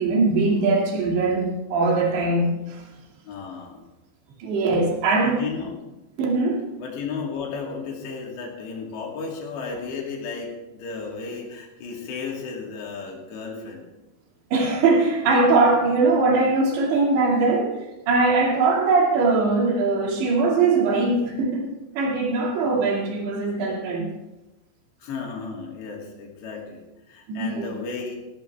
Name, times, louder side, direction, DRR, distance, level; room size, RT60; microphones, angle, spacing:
voice 1, 0.0-2.8 4.4-5.4 6.2-6.6 14.5-21.6 22.0-24.1 27.3-27.7, right 3 dB, 85° right, -1 dB, 4.7 m, -21 dB
voice 2, 3.3-3.8 5.2-5.8 6.8-13.9 22.7-22.8 25.0-28.2, left 5 dB, 80° left, 0 dB, 4.8 m, -34 dB
17.5 x 15.0 x 3.5 m, 1.0 s
omnidirectional pair, 5.0 m